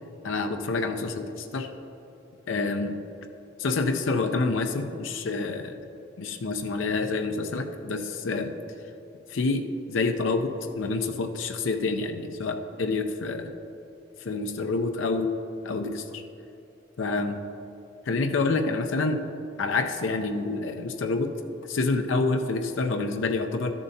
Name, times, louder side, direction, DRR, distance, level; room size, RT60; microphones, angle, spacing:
voice 1, 0.2-1.7 2.5-3.0 3.6-5.8 6.2-8.6 9.3-13.5 14.2-15.3 15.6-16.2 17.0-17.4 18.1-19.2 19.6-21.3 21.7-23.7, left 3 dB, 80° left, 5 dB, 0.5 m, -27 dB
12.5 x 7.3 x 2.7 m, 3.0 s
head